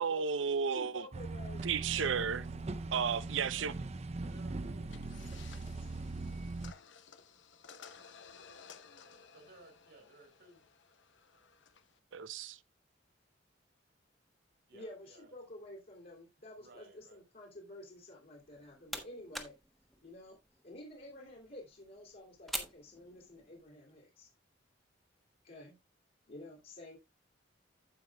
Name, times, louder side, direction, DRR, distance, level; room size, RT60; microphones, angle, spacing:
voice 1, 0.0-1.0 1.6-2.4 2.9-3.7 12.1-12.6, right 6 dB, 80° right, 0.6 m, -33 dB
voice 2, 0.7-2.1 14.7-19.5 20.0-20.4 20.6-24.3 25.4-25.8 26.3-27.0, left 1 dB, 50° left, 2.8 m, -50 dB
sound 1, 1.1-6.7, right 3 dB, 35° right, 0.5 m, -41 dB
voice 3, 3.4-3.8 4.2-5.0 9.3-10.6 14.7-15.3 16.6-17.2, right 2 dB, 60° right, 2.5 m, -58 dB
sound 2, 4.9-12.0, left 6 dB, 70° left, 0.9 m, -57 dB
sound 3, 18.4-23.7, equal, ahead, 1.2 m, -47 dB
15.0 x 5.4 x 2.2 m
head